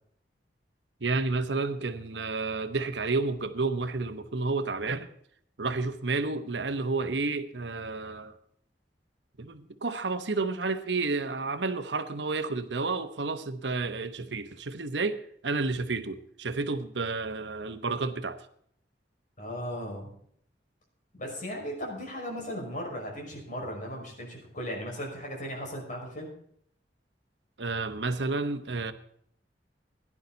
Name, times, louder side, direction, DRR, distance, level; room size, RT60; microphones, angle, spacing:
voice 1, 1.0-5.1 5.6-8.3 9.4-18.4 27.6-28.9, right 3 dB, 80° right, 1.1 m, -31 dB
voice 2, 19.4-20.1 21.2-26.3, equal, 45° left, 5.7 m, -37 dB
17.0 x 11.0 x 4.1 m
head